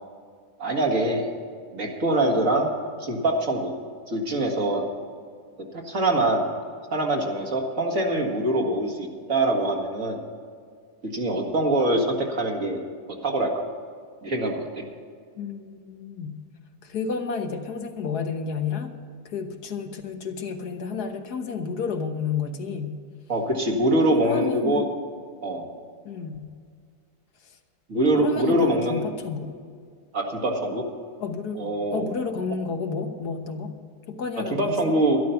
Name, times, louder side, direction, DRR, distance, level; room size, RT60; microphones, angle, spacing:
voice 1, 0.6-1.3 1.7-2.7 3.0-3.7 4.1-4.9 5.7-6.5 6.9-10.2 11.0-12.8 13.1-13.6 14.2-14.8 23.3-24.8 25.4-25.7 27.9-29.0 30.1-30.8 31.6-32.0 34.5-35.2, right 1 dB, 55° right, 1 dB, 2.2 m, -24 dB
voice 2, 15.3-16.4 16.8-18.9 19.2-23.0 24.1-24.9 26.0-26.5 27.4-27.6 28.2-29.6 31.2-33.7 34.1-35.0, left 5 dB, 75° left, 5 dB, 1.6 m, -31 dB
12.5 x 11.5 x 5.8 m, 2.1 s
omnidirectional pair, 1.7 m